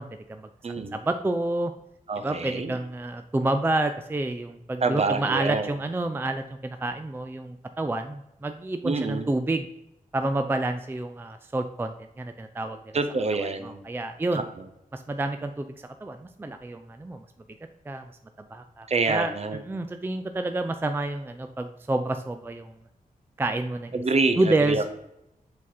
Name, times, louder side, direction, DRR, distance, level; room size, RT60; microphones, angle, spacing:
voice 1, 0.0-0.5 0.9-1.7 2.2-9.7 10.1-12.8 13.3-14.5 14.9-17.2 17.9-18.1 18.5-19.3 19.7-22.7 23.4-24.0 24.4-24.9, right 2 dB, 15° right, 8 dB, 0.4 m, -29 dB
voice 2, 0.6-1.0 2.1-2.7 4.8-5.7 8.8-9.3 12.9-13.8 14.3-14.4 18.9-19.6 23.9-24.8, right 3 dB, 45° right, 8 dB, 0.7 m, -26 dB
7.3 x 4.1 x 4.3 m, 0.84 s
wide cardioid pair, 140°, 15 cm